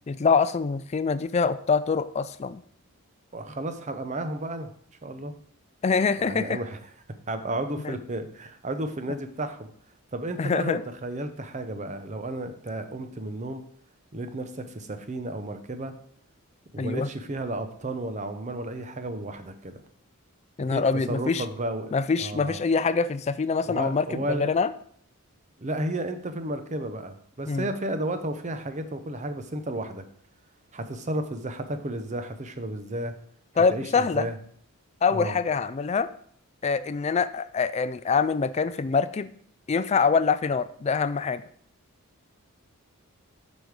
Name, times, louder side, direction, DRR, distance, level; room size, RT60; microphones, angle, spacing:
voice 1, 0.1-2.6 5.8-6.6 7.8-8.0 10.4-10.8 16.8-17.1 20.6-21.4 21.9-24.7 27.5-27.7 33.6-34.3 35.0-36.1 36.6-39.3 39.7-41.4, left 5 dB, 30° left, 15 dB, 0.3 m, -25 dB
voice 2, 3.3-4.7 5.0-5.3 6.2-6.8 7.3-9.7 10.1-13.6 14.1-15.9 16.7-19.8 20.6-22.6 23.6-24.5 25.6-30.0 30.7-33.1 33.7-34.4 35.1-35.4, right 1 dB, 30° right, 9 dB, 0.7 m, -33 dB
8.1 x 5.3 x 4.8 m, 0.62 s
head